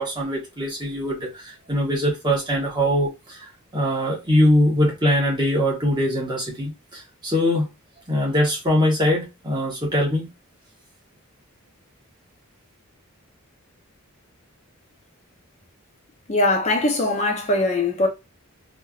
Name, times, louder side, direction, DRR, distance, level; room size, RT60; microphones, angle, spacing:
voice 1, 0.0-7.7 8.1-10.3, equal, 20° right, 1.0 m, -22 dB
voice 2, 16.3-18.1, left 2 dB, 30° left, 0.6 m, -21 dB
3.2 x 2.5 x 2.3 m
head